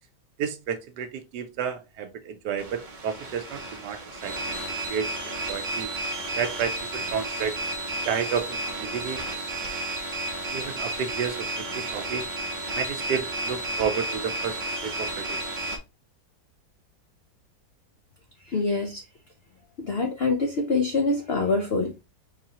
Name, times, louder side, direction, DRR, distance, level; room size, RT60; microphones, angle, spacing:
voice 1, 0.4-4.6 4.9-5.1 5.5-5.9 6.4-7.5 8.0-9.2 10.5-12.3 12.7-15.4, right 7 dB, 70° right, 1.3 m, -31 dB
sound 1, 2.6-15.8, right 2 dB, 35° right, 0.7 m, -32 dB
voice 2, 18.5-19.0 19.8-22.0, left 3 dB, 80° left, 0.5 m, -25 dB
4.6 x 3.3 x 2.8 m
omnidirectional pair, 1.9 m